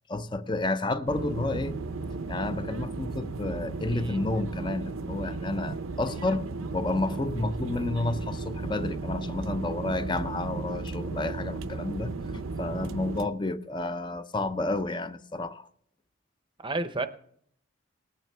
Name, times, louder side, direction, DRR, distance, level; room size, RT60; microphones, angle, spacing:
voice 1, 0.1-1.8 2.3-6.5 6.7-15.7, left 2 dB, 20° left, 0.5 m, -31 dB
sound 1, 1.1-13.3, right 3 dB, 80° right, 0.7 m, -35 dB
voice 2, 16.6-17.1, right 2 dB, 25° right, 0.7 m, -31 dB
20.0 x 9.1 x 3.4 m
head